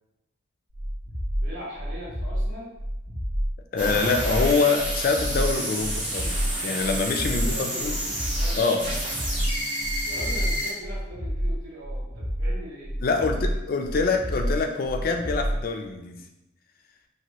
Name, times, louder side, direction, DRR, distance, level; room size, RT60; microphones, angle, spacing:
sound 1, 0.7-15.7, equal, 85° right, 0.7 m, -29 dB
voice 1, 1.4-2.7 7.3-8.6 10.0-13.6, equal, 70° right, -8 dB, 1.3 m, -41 dB
voice 2, 3.7-8.0 8.5-8.9 13.0-16.2, left 4 dB, 45° left, 4 dB, 0.3 m, -25 dB
sound 2, 3.8-10.7, right 1 dB, 25° right, 0.7 m, -30 dB
3.0 x 2.6 x 2.9 m, 0.95 s
head